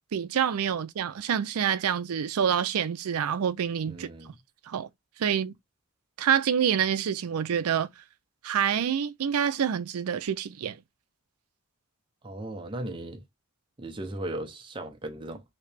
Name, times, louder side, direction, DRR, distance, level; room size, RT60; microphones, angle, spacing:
voice 1, 0.1-4.1 4.7-4.9 5.2-5.5 6.2-7.9 8.4-10.8, right 8 dB, 85° right, 0.4 m, -27 dB
voice 2, 3.9-4.4 12.2-13.2 13.8-15.4, right 1 dB, 20° right, 0.5 m, -37 dB
3.1 x 2.9 x 3.2 m
head